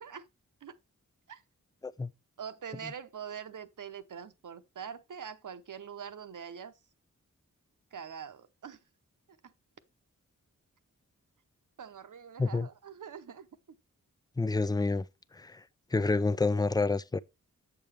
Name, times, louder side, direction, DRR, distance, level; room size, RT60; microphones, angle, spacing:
voice 1, 2.4-6.7 7.9-8.8 9.4-9.5 11.8-13.5, right 7 dB, 70° right, 0.8 m, -44 dB
voice 2, 14.4-15.1 15.3-15.6 15.9-17.2, left 3 dB, 15° left, 0.4 m, -28 dB
7.6 x 7.0 x 3.3 m
wide cardioid pair, 75°, 32 cm